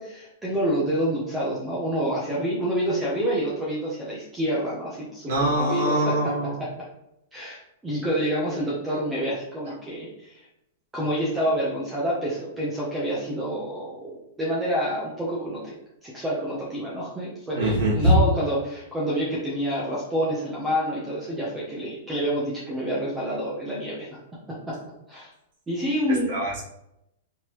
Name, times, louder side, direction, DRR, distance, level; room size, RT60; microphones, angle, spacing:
voice 1, 0.0-6.3 7.3-10.4 10.9-15.7 16.0-24.1 24.7-24.8 25.1-25.3 25.7-26.4, equal, 5° right, -6 dB, 0.7 m, -28 dB
voice 2, 5.3-6.5 17.5-18.1 26.3-26.6, right 1 dB, 45° right, -5 dB, 1.6 m, -23 dB
4.6 x 3.5 x 3.0 m, 0.82 s
supercardioid pair, 175°, 0 cm